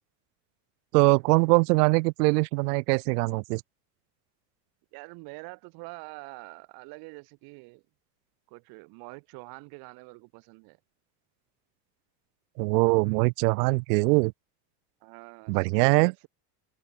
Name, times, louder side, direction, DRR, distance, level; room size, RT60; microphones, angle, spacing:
voice 1, 0.9-3.6 12.6-14.3 15.5-16.1, right 28 dB, 85° right, 0.5 m, -22 dB
voice 2, 4.9-7.8 8.5-10.8 15.0-16.3, right 29 dB, 50° right, 3.0 m, -45 dB
open air
cardioid pair, 170°, 46 cm